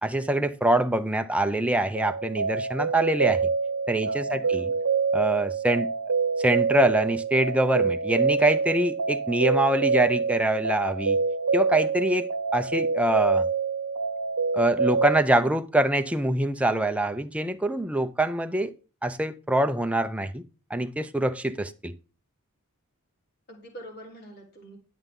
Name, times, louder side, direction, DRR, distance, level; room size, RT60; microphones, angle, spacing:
voice 1, 0.0-3.5 3.9-4.7 5.1-5.9 6.4-11.2 11.5-13.5 14.5-18.7 19.0-20.4 20.7-21.9, right 1 dB, 5° right, 0.6 m, -24 dB
sound 1, 1.9-15.2, right 5 dB, 80° right, 0.9 m, -26 dB
voice 2, 4.1-4.8 23.5-24.8, right 1 dB, 50° left, 3.5 m, -45 dB
11.0 x 7.9 x 3.8 m
head